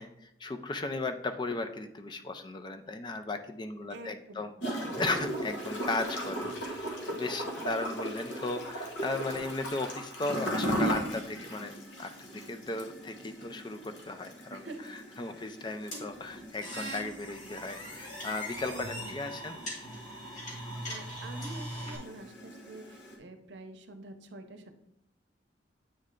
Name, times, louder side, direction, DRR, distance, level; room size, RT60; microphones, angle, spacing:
voice 1, 0.0-14.6 15.2-19.6, left 2 dB, 25° left, 7 dB, 0.4 m, -36 dB
voice 2, 3.9-4.5 14.5-15.4 18.7-19.2 20.6-24.8, right 2 dB, 75° right, 7 dB, 0.7 m, -47 dB
Gurgling / Toilet flush, 4.6-23.1, equal, 80° left, 1.2 m, -38 dB
sound 1, 15.9-22.0, equal, 40° left, 1.7 m, -40 dB
8.3 x 3.2 x 3.7 m, 0.77 s
head